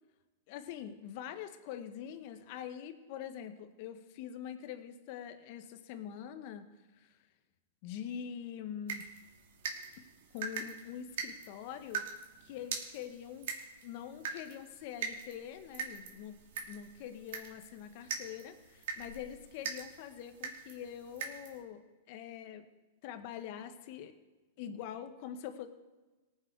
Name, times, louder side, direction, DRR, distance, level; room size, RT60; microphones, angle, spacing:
voice 1, 0.5-6.7 7.0-7.1 7.8-9.1 10.3-12.1 12.4-13.5 13.8-16.4 16.7-22.6 23.0-24.1 24.6-25.7, left 9 dB, 50° left, 8 dB, 1.4 m, -44 dB
sound 1, 8.9-21.6, right 6 dB, 70° right, 2.7 m, -43 dB
19.0 x 7.5 x 4.8 m, 1.2 s
hypercardioid pair, 125°, 0 cm